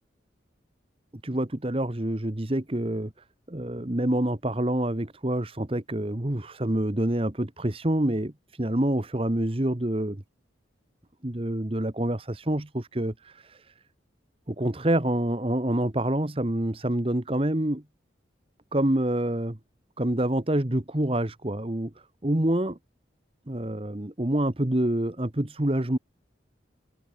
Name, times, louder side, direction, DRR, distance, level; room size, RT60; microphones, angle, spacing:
voice 1, 1.2-3.1 3.5-10.2 11.2-13.7 14.5-17.8 18.7-19.6 20.0-21.9 22.2-22.8 23.5-26.0, right 1 dB, 30° right, 1.3 m, -27 dB
head